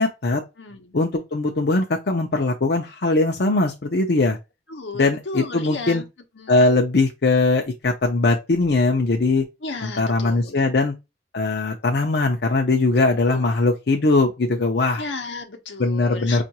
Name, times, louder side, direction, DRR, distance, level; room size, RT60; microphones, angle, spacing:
voice 1, 0.0-0.4 0.9-4.4 4.9-6.0 6.5-9.4 9.8-10.9 11.3-15.0 15.8-16.4, left 3 dB, 60° left, 0.6 m, -20 dB
voice 2, 0.6-0.9 4.7-6.1 6.4-6.7 9.6-10.7 13.2-13.5 15.0-16.4, left 3 dB, 85° left, 0.9 m, -34 dB
5.4 x 2.5 x 2.8 m
head